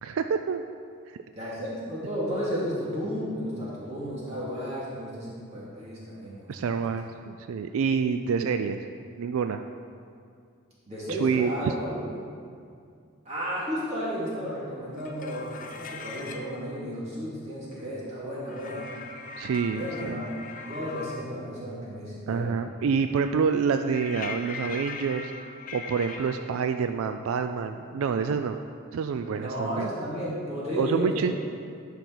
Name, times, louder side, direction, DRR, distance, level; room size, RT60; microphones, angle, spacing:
voice 1, 0.0-0.6 1.1-1.2 6.5-8.9 9.2-9.6 11.1-11.7 19.4-20.2 22.3-28.6 28.9-29.9 30.8-31.3, right 6 dB, 85° right, 8 dB, 0.3 m, -27 dB
voice 2, 1.3-6.5 10.9-12.0 13.2-18.9 19.7-20.3 20.6-22.5 29.4-31.3, equal, 30° right, -8 dB, 2.5 m, -33 dB
sound 1, 14.9-16.5 18.5-21.3 23.9-26.4, left 4 dB, 40° left, 0.6 m, -40 dB
11.5 x 5.3 x 4.6 m, 2.3 s
head